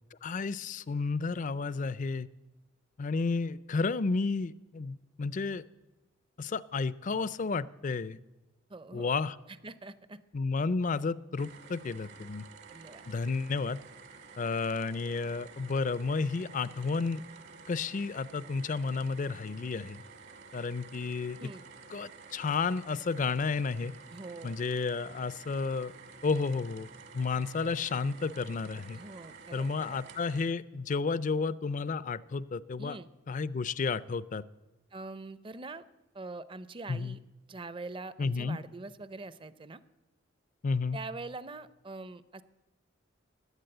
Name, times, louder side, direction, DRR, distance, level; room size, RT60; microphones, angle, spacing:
voice 1, 0.2-2.3 3.0-5.6 6.4-8.2 8.9-9.4 10.3-12.4 13.1-13.8 14.4-17.2 17.7-20.0 20.5-21.5 21.9-23.9 24.4-25.9 26.2-26.9 27.1-29.0 29.5-33.0 33.3-34.4 36.9-37.2 38.2-38.6 40.6-41.0, left 4 dB, 40° left, 18 dB, 0.4 m, -32 dB
voice 2, 8.7-9.1 9.5-10.2 12.7-13.0 21.4-21.6 24.1-24.6 28.9-30.0 32.8-33.1 34.9-35.8 36.1-37.2 37.5-39.8 40.9-42.4, right 3 dB, 25° right, 15 dB, 0.5 m, -44 dB
sound 1, 11.4-30.5, right 5 dB, 60° right, 1.5 m, -51 dB
16.5 x 11.0 x 7.8 m, 1.1 s
head